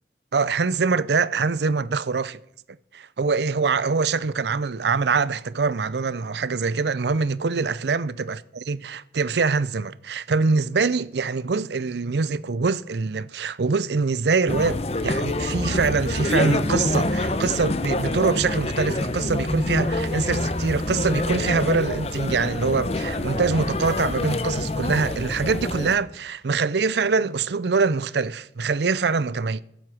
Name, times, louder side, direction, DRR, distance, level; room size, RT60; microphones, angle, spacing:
voice 1, 0.3-2.4 2.9-8.4 8.7-29.6, right 4 dB, 70° right, 0.5 m, -24 dB
sound 1, 14.5-26.0, left 2 dB, 35° left, 0.8 m, -26 dB
15.0 x 7.8 x 6.4 m
head